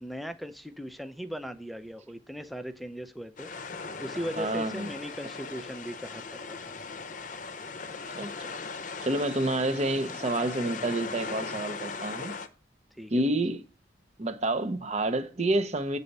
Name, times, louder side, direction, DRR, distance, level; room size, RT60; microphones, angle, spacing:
voice 1, 0.0-3.5 4.0-6.7 9.0-9.2 13.0-13.2, equal, ahead, 0.6 m, -38 dB
sound 1, 3.4-12.5, left 4 dB, 45° left, 0.7 m, -39 dB
voice 2, 4.4-4.9 8.2-8.3 9.0-12.3 13.1-13.6 14.2-16.0, right 1 dB, 40° right, 0.8 m, -28 dB
8.3 x 4.1 x 6.6 m
head